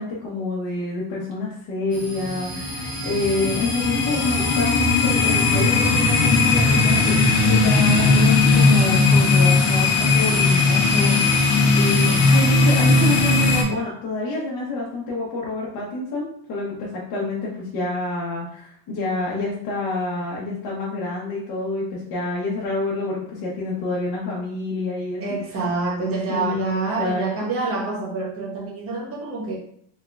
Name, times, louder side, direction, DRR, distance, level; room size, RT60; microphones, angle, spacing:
voice 1, 0.0-25.2 26.3-27.3, left 3 dB, 60° left, -6 dB, 1.0 m, -28 dB
sound 1, 1.9-13.6, left 3 dB, 80° left, 1.0 m, -18 dB
voice 2, 25.2-29.6, right 3 dB, 35° right, -4 dB, 1.1 m, -26 dB
3.6 x 3.4 x 2.3 m, 0.63 s
cardioid pair, 145°, 42 cm